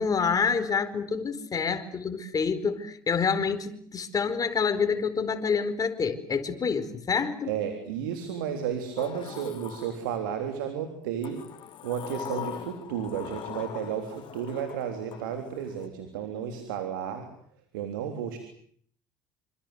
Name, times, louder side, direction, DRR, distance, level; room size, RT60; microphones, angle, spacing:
voice 1, 0.0-7.5, left 5 dB, 35° left, 8 dB, 4.5 m, -27 dB
voice 2, 7.4-11.4 11.8-17.3 17.7-18.4, right 8 dB, 80° right, 6 dB, 3.6 m, -33 dB
Sliding door, 9.0-10.5 11.2-15.9, left 10 dB, 50° left, 3.3 m, -41 dB
27.5 x 26.0 x 8.2 m, 0.62 s
hypercardioid pair, 65°, 11 cm